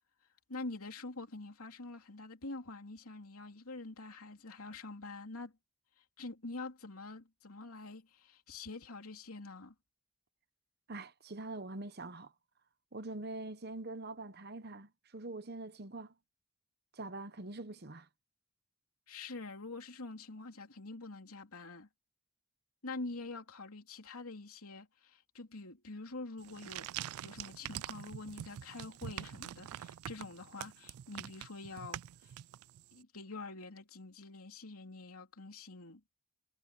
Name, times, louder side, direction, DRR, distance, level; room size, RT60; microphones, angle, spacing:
voice 1, 0.5-5.5 6.0-9.7 19.1-21.9 22.8-32.3 32.9-36.0, left 3 dB, 80° left, 3.0 m, -46 dB
voice 2, 10.9-12.3 12.9-16.1 16.9-18.1, right 2 dB, 45° right, 1.0 m, -44 dB
sound 1, 26.4-32.9, right 11 dB, 80° right, 0.3 m, -45 dB
head